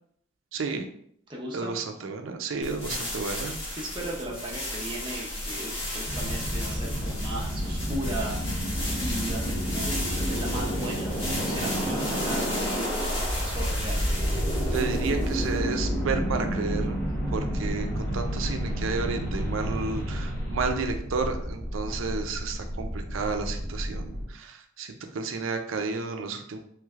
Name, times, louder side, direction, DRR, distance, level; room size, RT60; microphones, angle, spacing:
voice 1, 0.5-0.9 1.5-3.8 14.7-17.0 17.3-26.6, right 4 dB, 85° right, 5 dB, 0.4 m, -32 dB
voice 2, 1.3-1.8 3.7-14.2, right 1 dB, 25° right, -3 dB, 0.6 m, -37 dB
sound 1, 2.6-15.7, left 1 dB, 55° left, 1.4 m, -34 dB
sound 2, 6.1-24.3, equal, 15° left, 1.1 m, -30 dB
3.2 x 3.1 x 2.4 m, 0.67 s
head